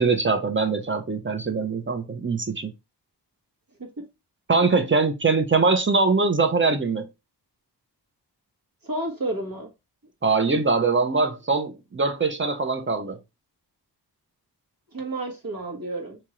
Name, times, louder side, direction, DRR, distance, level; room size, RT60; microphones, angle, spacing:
voice 1, 0.0-2.7 4.5-7.1 10.2-13.2, right 4 dB, 30° right, 0.8 m, -22 dB
voice 2, 8.8-9.7 14.9-16.2, right 2 dB, 55° right, 1.6 m, -31 dB
3.5 x 2.9 x 3.0 m
wide cardioid pair, 80°, 41 cm